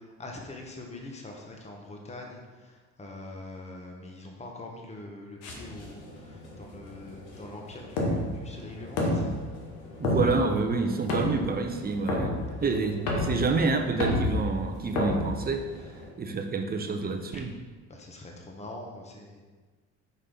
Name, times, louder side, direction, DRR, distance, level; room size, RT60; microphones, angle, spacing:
voice 1, 0.0-9.4 17.3-17.4 17.9-19.4, left 2 dB, 20° left, 1 dB, 1.1 m, -43 dB
sound 1, 5.4-16.1, left 1 dB, 90° left, 1.2 m, -31 dB
voice 2, 10.0-15.7 16.2-17.5, right 4 dB, 25° right, 5 dB, 0.8 m, -28 dB
5.4 x 5.0 x 4.0 m, 1.3 s
supercardioid pair, 75°, 35 cm